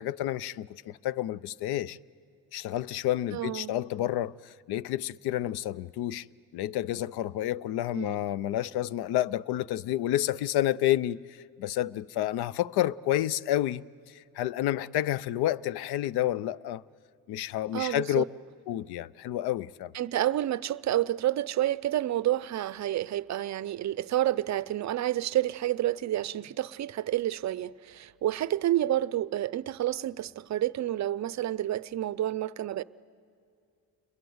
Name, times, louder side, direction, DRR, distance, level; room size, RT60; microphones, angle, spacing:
voice 1, 0.0-2.0 2.5-6.3 6.5-13.8 14.1-16.8 17.3-18.2 18.7-19.9, left 13 dB, 70° left, 0.6 m, -30 dB
voice 2, 3.3-3.7 7.9-8.4 17.7-18.3 19.9-32.8, right 13 dB, 45° right, 0.6 m, -29 dB
29.0 x 22.0 x 7.9 m
cardioid pair, 110°, 40 cm